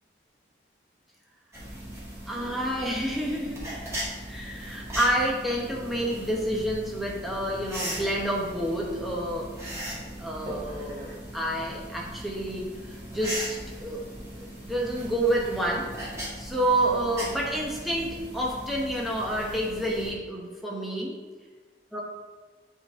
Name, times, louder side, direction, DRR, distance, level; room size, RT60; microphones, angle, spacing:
sound 1, 1.5-20.1, right 1 dB, 15° right, 1.8 m, -38 dB
voice 1, 2.3-3.7 4.2-9.8 10.2-11.0 11.3-14.0 14.3-21.1 21.9-22.0, right 1 dB, ahead, -3 dB, 1.0 m, -29 dB
7.9 x 3.9 x 3.6 m, 1.4 s
head